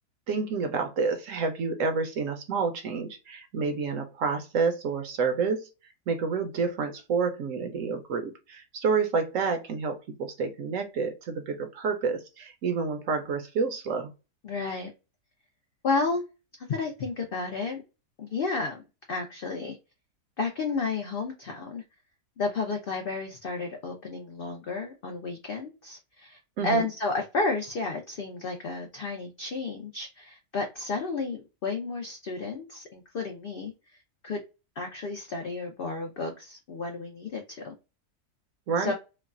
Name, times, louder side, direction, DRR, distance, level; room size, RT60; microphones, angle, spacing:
voice 1, 0.3-5.7 6.1-14.1 26.6-26.9 38.7-38.9, right 5 dB, 65° right, 0.9 m, -29 dB
voice 2, 14.4-14.9 15.8-16.2 16.6-17.8 18.2-18.8 19.1-19.8 20.4-21.8 22.4-33.7 34.2-34.4 34.8-37.7 38.8-38.9, left 3 dB, 75° left, 0.5 m, -32 dB
3.1 x 2.2 x 2.3 m
omnidirectional pair, 1.7 m